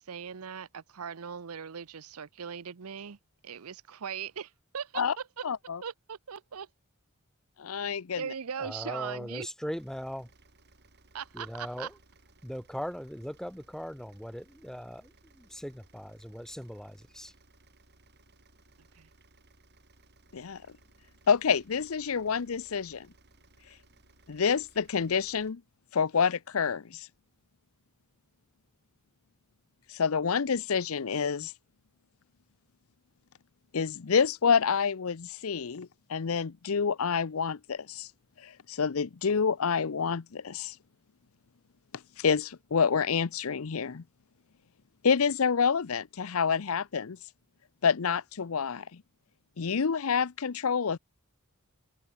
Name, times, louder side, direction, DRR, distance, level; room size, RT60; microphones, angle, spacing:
voice 1, 0.0-3.2 3.4-5.5 5.8-6.7 8.2-9.5 11.1-11.9 19.0-19.1, right 7 dB, 85° right, 0.7 m, -39 dB
voice 2, 5.4-5.8 7.6-8.2 20.3-20.6 21.3-23.1 24.3-25.6 25.9-27.1 29.9-31.5 33.7-38.1 38.4-40.7 42.2-44.0 45.0-47.2 47.8-49.0 49.6-51.0, left 6 dB, 75° left, 0.6 m, -28 dB
voice 3, 8.6-10.3 11.3-11.9 12.4-17.3, equal, ahead, 1.2 m, -39 dB
sound 1, 9.7-25.5, right 2 dB, 50° right, 7.7 m, -62 dB
open air
head